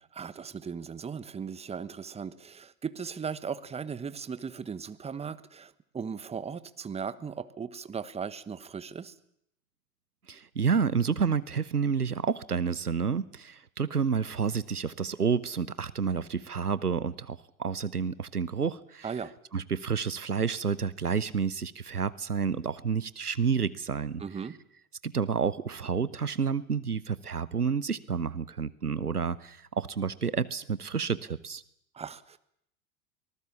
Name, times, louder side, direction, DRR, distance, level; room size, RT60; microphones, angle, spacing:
voice 1, 0.1-9.1 19.0-19.3 24.2-24.6 31.9-32.4, right 6 dB, 15° right, 16 dB, 1.2 m, -37 dB
voice 2, 10.3-19.1 19.5-24.2 25.0-31.6, right 6 dB, 90° right, 19 dB, 0.9 m, -30 dB
24.5 x 19.0 x 7.2 m, 0.73 s
figure-of-eight pair, 85°, 44 cm